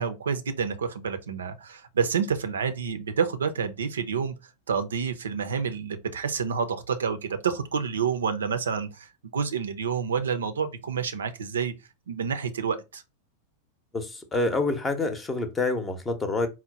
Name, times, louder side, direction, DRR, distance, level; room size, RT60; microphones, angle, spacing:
voice 1, 0.0-4.3 4.7-11.7 12.1-13.0, right 6 dB, 65° right, 0.5 m, -28 dB
voice 2, 13.9-16.5, left 3 dB, 15° left, 0.7 m, -27 dB
4.4 x 2.1 x 3.9 m
figure-of-eight pair, 90°, 0 cm